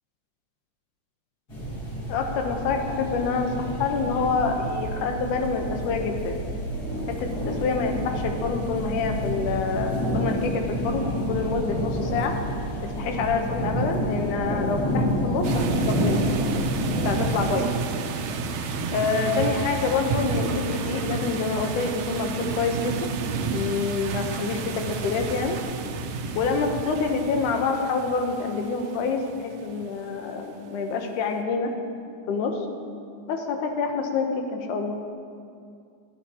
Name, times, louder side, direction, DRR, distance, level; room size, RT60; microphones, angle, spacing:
sound 1, 1.5-17.5, equal, 35° left, 2.2 m, -29 dB
voice 1, 2.1-6.5 7.1-12.3 13.0-16.2 17.1-17.7 18.9-23.1 23.5-25.6 26.3-31.7 32.3-32.6 33.3-34.9, left 4 dB, 80° left, 4 dB, 2.4 m, -27 dB
sound 2, 15.4-30.0, right 5 dB, 75° right, 1.6 m, -31 dB
14.0 x 11.0 x 2.8 m, 2.4 s
omnidirectional pair, 3.6 m